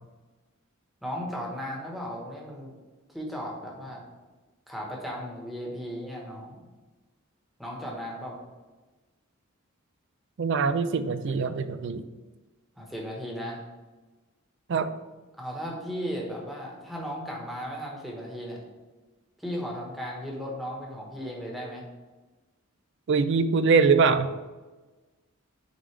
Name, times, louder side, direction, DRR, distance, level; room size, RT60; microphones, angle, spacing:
voice 1, 1.0-2.7 3.1-4.0 4.7-6.6 7.6-8.4 12.8-13.6 15.4-18.6 19.4-21.8, equal, ahead, -3 dB, 1.3 m, -36 dB
voice 2, 10.4-12.0 14.7-14.9 23.1-24.3, right 5 dB, 60° right, 12 dB, 0.4 m, -23 dB
8.6 x 3.7 x 3.3 m, 1.2 s
head